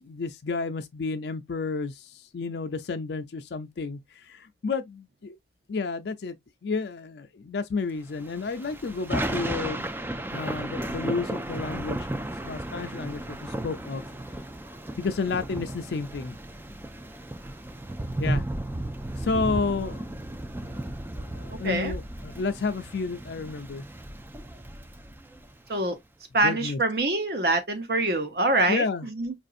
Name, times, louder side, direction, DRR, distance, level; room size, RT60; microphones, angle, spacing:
voice 1, 0.0-5.4 5.7-6.4 6.6-9.8 10.3-14.0 15.0-16.4 18.2-18.4 19.2-20.0 20.6-23.9 26.4-26.8 28.7-29.1, left 4 dB, 65° left, 0.4 m, -31 dB
Thunder / Rain, 8.2-25.7, right 1 dB, 10° right, 0.3 m, -34 dB
voice 2, 21.6-21.9 25.7-26.0 26.3-29.3, right 2 dB, 55° right, 0.9 m, -25 dB
4.9 x 2.6 x 2.4 m
head